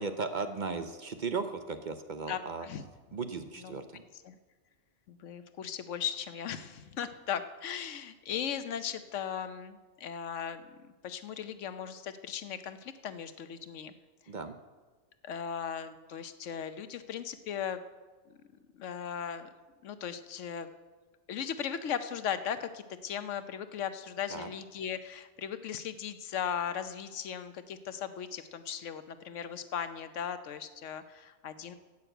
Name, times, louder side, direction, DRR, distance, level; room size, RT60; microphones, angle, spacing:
voice 1, 0.0-2.7 3.1-4.0 14.3-14.6 24.3-24.5, right 4 dB, 50° right, 8 dB, 0.7 m, -36 dB
voice 2, 2.3-2.9 3.6-3.8 4.2-4.4 5.1-13.9 15.2-17.8 18.3-18.4 18.7-19.5 19.8-20.7 21.3-31.8, left 8 dB, 80° left, 11 dB, 1.1 m, -37 dB
11.0 x 8.4 x 7.9 m, 1.3 s
omnidirectional pair, 1.2 m